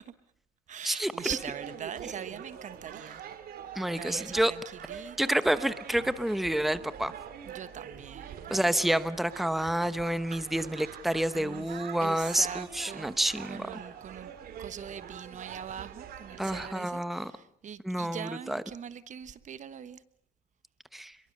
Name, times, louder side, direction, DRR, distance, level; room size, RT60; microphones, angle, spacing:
voice 1, 0.7-3.2 3.9-4.6 4.9-5.4 7.4-8.7 11.3-13.1 13.5-14.3 14.6-20.0, right 8 dB, 45° right, 1.2 m, -42 dB
sound 1, 1.2-16.7, right 8 dB, 65° right, 2.8 m, -44 dB
voice 2, 3.8-4.5 5.2-7.1 8.5-13.7 16.4-17.3 17.8-18.6 20.9-21.1, right 1 dB, ahead, 1.0 m, -29 dB
29.5 x 22.5 x 6.6 m
cardioid pair, 110°, 17 cm